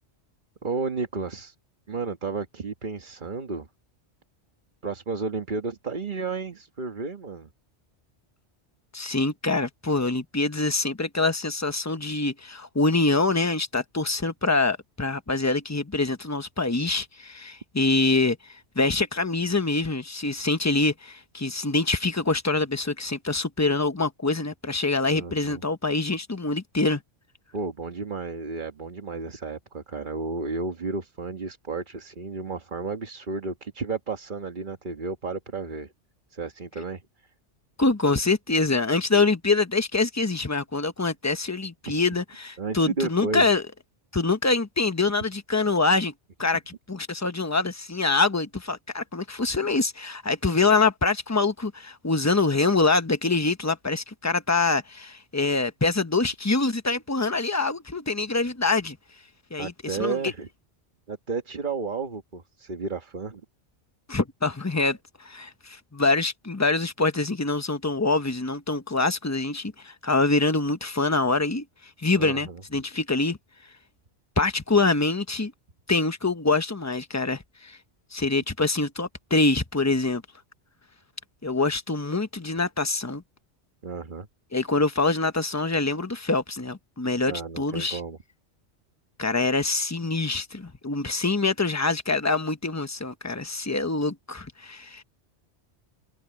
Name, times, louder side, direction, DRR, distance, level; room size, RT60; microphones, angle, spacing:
voice 1, 0.6-1.5 1.9-3.7 4.8-7.5 25.1-25.6 27.5-35.9 36.3-37.0 41.9-42.0 42.6-43.5 59.6-60.5 61.1-63.4 72.1-72.6 83.8-84.3 87.3-88.2, right 4 dB, 45° right, 1.5 m, -32 dB
voice 2, 8.9-27.0 37.8-43.6 44.1-46.1 46.4-59.0 59.5-60.3 64.1-71.6 72.0-73.4 74.4-75.5 75.9-77.8 78.1-80.2 81.4-83.2 84.5-88.0 89.2-95.0, left 3 dB, 15° left, 1.0 m, -25 dB
omnidirectional pair, 1.2 m